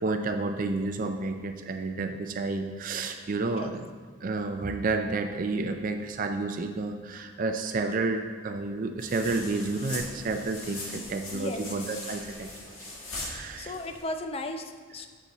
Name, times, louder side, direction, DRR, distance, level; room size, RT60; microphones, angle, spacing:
voice 1, 0.0-3.9 4.2-12.8 13.1-13.8, right 3 dB, 40° right, 6 dB, 0.4 m, -30 dB
sound 1, 9.0-14.0, left 2 dB, 75° left, 2.1 m, -40 dB
voice 2, 11.3-11.6 13.6-15.1, left 1 dB, 30° left, 6 dB, 0.5 m, -35 dB
7.3 x 6.8 x 4.1 m, 1.5 s
head